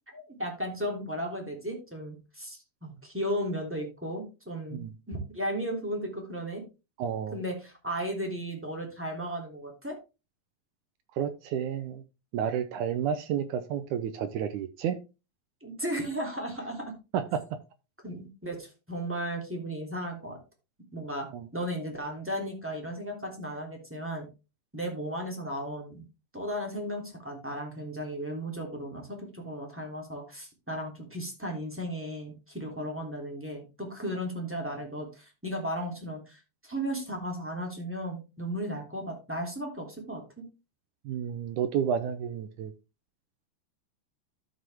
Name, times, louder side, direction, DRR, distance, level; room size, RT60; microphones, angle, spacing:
voice 1, 0.1-6.6 7.3-9.9 15.6-16.9 18.0-20.4 20.9-24.3 24.7-26.1 26.3-40.5, equal, 5° right, 2.4 m, -35 dB
voice 2, 7.0-7.4 11.2-12.0 12.3-15.0 17.1-17.6 21.3-21.5 41.1-42.7, right 8 dB, 75° right, 1.9 m, -31 dB
13.0 x 6.2 x 3.5 m
omnidirectional pair, 4.2 m